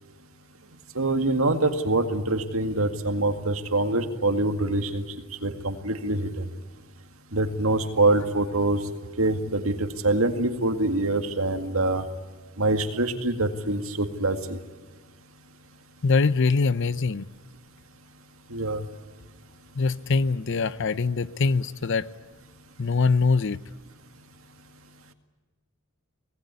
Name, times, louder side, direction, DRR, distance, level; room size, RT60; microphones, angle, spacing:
voice 1, 1.0-5.0 5.4-6.5 7.3-8.8 9.2-12.0 12.6-14.6 18.5-18.8, right 2 dB, 75° right, 2.1 m, -25 dB
voice 2, 16.0-17.2 19.8-22.1 22.8-23.6, left 4 dB, 60° left, 0.7 m, -23 dB
25.0 x 19.5 x 9.7 m
head